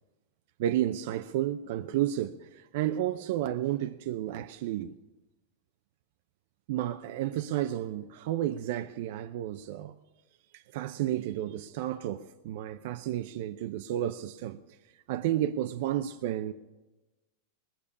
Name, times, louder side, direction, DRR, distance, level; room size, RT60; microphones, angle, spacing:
voice 1, 0.6-5.0 6.7-9.9 10.5-14.6 15.1-16.5, right 12 dB, 65° right, 0.6 m, -31 dB
20.5 x 6.9 x 8.5 m
hypercardioid pair, 120°, 0 cm